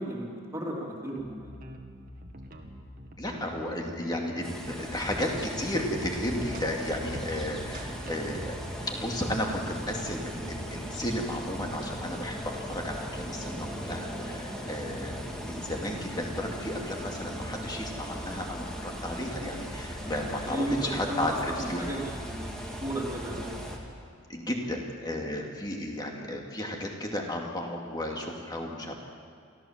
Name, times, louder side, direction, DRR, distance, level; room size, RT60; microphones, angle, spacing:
voice 1, 0.0-1.6 20.2-23.5, right 1 dB, 15° right, -3 dB, 3.3 m, -34 dB
sound 1, 1.2-8.9, equal, 40° right, 1.7 m, -44 dB
voice 2, 3.2-8.6 8.9-21.8 24.3-28.9, left 1 dB, 20° left, 1 dB, 2.4 m, -33 dB
sound 2, 4.4-23.8, equal, 5° left, 2.0 m, -38 dB
24.0 x 15.0 x 7.5 m, 2.2 s
head